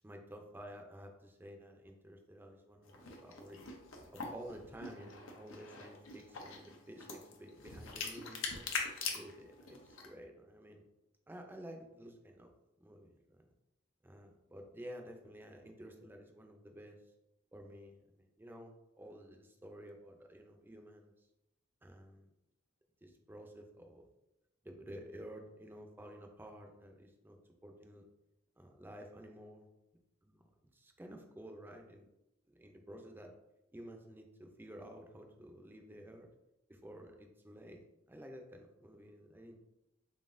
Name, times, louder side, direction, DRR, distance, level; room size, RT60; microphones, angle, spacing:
voice 1, 0.0-3.6 4.1-8.5 9.0-10.9 11.3-13.5 14.0-17.0 17.5-21.3 21.8-22.3 23.0-24.1 24.6-28.1 28.6-29.6 30.3-30.4 30.7-32.1 32.5-33.3 33.7-36.3 36.7-39.6, equal, 10° right, 3 dB, 0.4 m, -52 dB
sound 1, 2.8-10.1, left 4 dB, 85° left, 0.7 m, -43 dB
3.9 x 3.7 x 2.5 m, 0.91 s
head